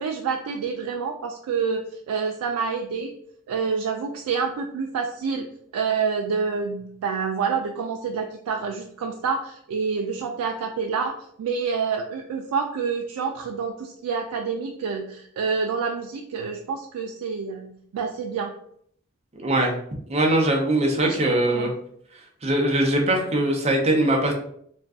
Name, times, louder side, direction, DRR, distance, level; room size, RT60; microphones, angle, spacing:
voice 1, 0.0-3.1 3.5-5.5 5.7-18.5 21.0-21.7, right 5 dB, 85° right, 2 dB, 0.3 m, -28 dB
voice 2, 19.3-19.8 20.1-21.7 22.4-24.3, right 1 dB, 30° right, 1 dB, 0.6 m, -21 dB
2.5 x 2.2 x 3.4 m, 0.66 s
head